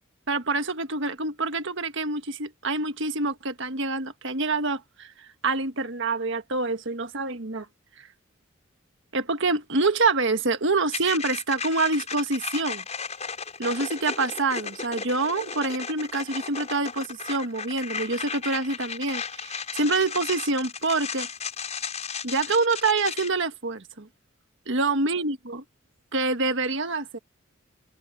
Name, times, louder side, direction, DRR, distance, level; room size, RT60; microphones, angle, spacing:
voice 1, 0.3-5.1 5.4-7.7 9.1-12.8 13.6-21.3 22.2-24.1 24.7-25.6 26.1-27.2, right 3 dB, 65° right, 1.6 m, -26 dB
sound 1, 10.9-23.3, left 6 dB, 35° left, 7.5 m, -35 dB
open air
head